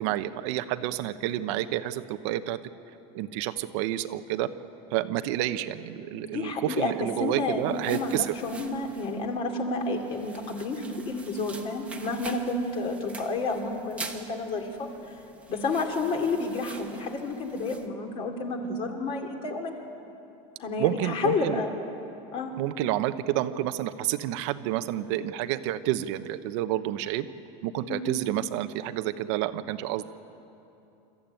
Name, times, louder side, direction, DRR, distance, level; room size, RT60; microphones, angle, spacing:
voice 1, 0.0-2.6 3.1-4.5 4.9-8.3 20.8-21.6 22.6-27.3 27.6-30.0, right 13 dB, 65° right, 10 dB, 0.9 m, -29 dB
voice 2, 6.1-14.9 15.5-19.9 20.6-21.7 22.3-22.5 27.9-28.1, left 3 dB, 35° left, 4 dB, 2.7 m, -30 dB
sound 1, 7.1-17.9, right 3 dB, 10° right, 1.3 m, -46 dB
27.5 x 14.0 x 9.1 m, 2.9 s
supercardioid pair, 160°, 16 cm